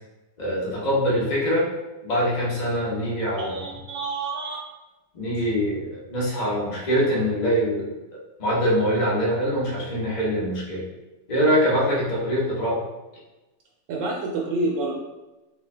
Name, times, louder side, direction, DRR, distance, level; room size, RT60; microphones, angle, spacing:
voice 1, 0.4-1.7 2.0-3.5 5.1-7.9 8.4-10.8 11.3-12.8, equal, 55° left, -5 dB, 0.4 m, -23 dB
voice 2, 3.4-4.6 13.9-14.9, right 2 dB, 75° right, -3 dB, 1.3 m, -28 dB
3.3 x 2.5 x 3.3 m, 1.1 s
omnidirectional pair, 2.2 m